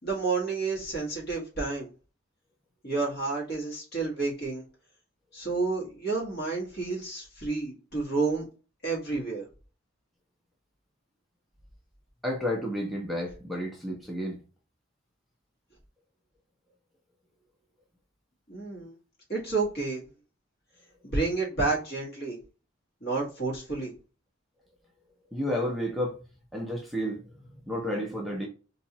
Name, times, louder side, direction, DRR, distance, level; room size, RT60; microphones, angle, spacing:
voice 1, 0.0-1.9 2.8-4.6 5.3-8.4 8.8-9.5 18.5-18.9 19.3-20.0 21.0-22.4 23.0-23.9, right 3 dB, 55° left, 1.8 m, -30 dB
voice 2, 12.2-14.4 25.3-26.2 26.5-28.5, equal, ahead, 0.6 m, -31 dB
3.8 x 2.7 x 2.8 m
head